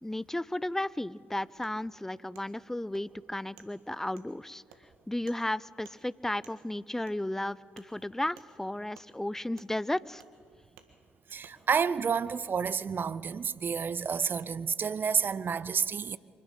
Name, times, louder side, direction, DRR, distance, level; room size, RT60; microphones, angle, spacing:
voice 1, 0.0-4.6 5.1-10.2, left 1 dB, 10° left, 0.5 m, -34 dB
Wood, 1.6-1.7 2.3-2.5 2.9-3.1 3.6-3.7 4.2-4.3 4.7-4.8 5.3-5.4 5.8-6.0 6.4-6.6 7.1-7.2 7.8-7.9 8.4-8.5 8.9-9.1 9.6-9.7 10.2-10.3 10.8-10.9 11.4-11.6 12.1-12.3 13.3-13.4 14.2-14.3 14.8-14.9, right 10 dB, 75° right, 1.7 m, -56 dB
voice 2, 11.3-16.2, right 6 dB, 40° right, 0.6 m, -30 dB
24.5 x 12.0 x 8.9 m
hypercardioid pair, 45°, 5 cm